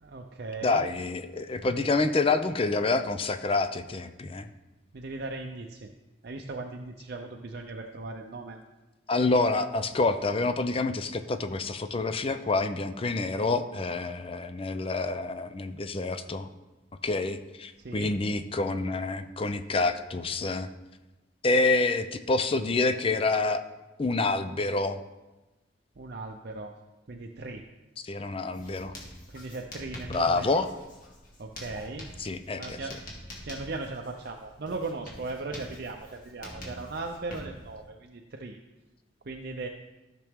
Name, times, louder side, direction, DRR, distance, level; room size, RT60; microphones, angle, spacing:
voice 1, 0.0-0.8 4.9-5.9 6.2-8.6 17.8-18.1 26.0-26.7 27.1-27.6 29.3-30.5 31.4-32.1 32.6-33.0 33.4-38.6 39.3-39.7, right 3 dB, 55° right, 2 dB, 0.6 m, -38 dB
voice 2, 0.6-4.5 9.1-16.5 17.0-20.7 21.4-23.6 24.0-25.0 28.0-28.9 30.1-30.7 32.2-32.8, left 3 dB, 30° left, 10 dB, 0.5 m, -27 dB
Writing, 28.5-37.8, left 1 dB, 45° left, 1.9 m, -45 dB
14.0 x 6.0 x 3.6 m, 1.1 s
head